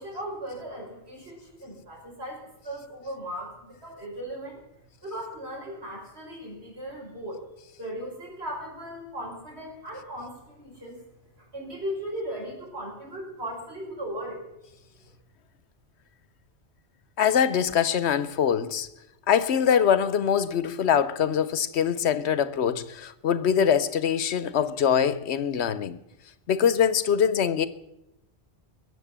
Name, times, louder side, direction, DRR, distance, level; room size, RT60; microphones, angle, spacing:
voice 1, 0.0-4.6 5.0-7.4 7.8-11.0 11.4-14.4, equal, 75° right, 6.1 m, -37 dB
voice 2, 17.2-18.9 19.3-26.0 26.5-27.7, left 8 dB, 80° left, 1.1 m, -23 dB
21.0 x 8.0 x 7.4 m
omnidirectional pair, 1.1 m